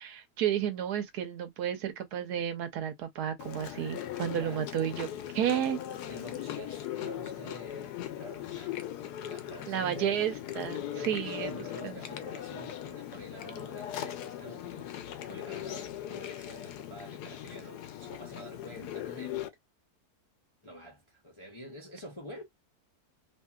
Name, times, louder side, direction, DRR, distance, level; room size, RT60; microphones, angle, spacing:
voice 1, 0.0-5.1 5.3-5.8 9.7-12.0, right 10 dB, 85° right, 1.3 m, -32 dB
Chewing mastication, 3.4-19.5, left 11 dB, 85° left, 1.1 m, -39 dB
voice 2, 6.1-8.8 9.2-10.1 10.9-19.4 20.6-22.4, equal, 35° left, 0.5 m, -48 dB
2.8 x 2.7 x 2.3 m
omnidirectional pair, 1.7 m